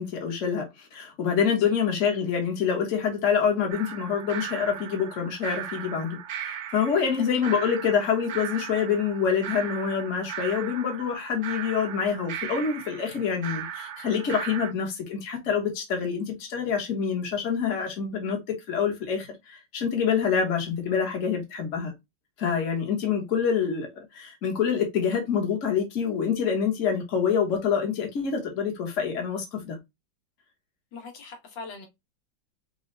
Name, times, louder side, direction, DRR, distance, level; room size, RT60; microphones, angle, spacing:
voice 1, 0.0-21.9 22.4-29.8, left 7 dB, 45° left, 1.5 m, -26 dB
Paulstretched Click Track with beat, 3.7-14.7, right 9 dB, 80° right, 0.6 m, -37 dB
voice 2, 30.9-31.9, left 4 dB, 85° left, 1.9 m, -42 dB
5.7 x 2.3 x 3.2 m
omnidirectional pair, 2.0 m